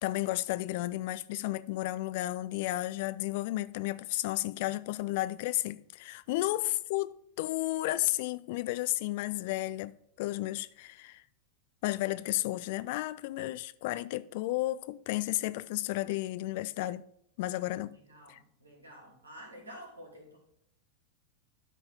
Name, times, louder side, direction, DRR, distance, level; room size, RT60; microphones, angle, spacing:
voice 1, 0.0-11.2 11.8-17.0 17.4-18.0 18.3-18.4, left 17 dB, 50° left, 0.4 m, -33 dB
voice 2, 17.8-20.4, equal, 75° right, 3.0 m, -50 dB
12.0 x 4.1 x 3.9 m
figure-of-eight pair, 90°, 0 cm